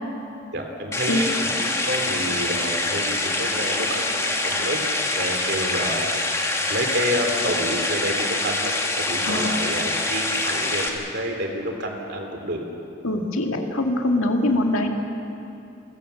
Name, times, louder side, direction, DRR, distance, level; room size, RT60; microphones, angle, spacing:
voice 1, 0.5-4.8 5.2-6.0 6.7-12.6, equal, 55° right, 2 dB, 3.4 m, -29 dB
sound 1, 0.9-10.9, left 2 dB, 15° left, 2.0 m, -25 dB
voice 2, 9.2-9.7 13.0-14.9, left 1 dB, 85° left, 2 dB, 2.2 m, -23 dB
29.0 x 17.0 x 7.1 m, 2.8 s
head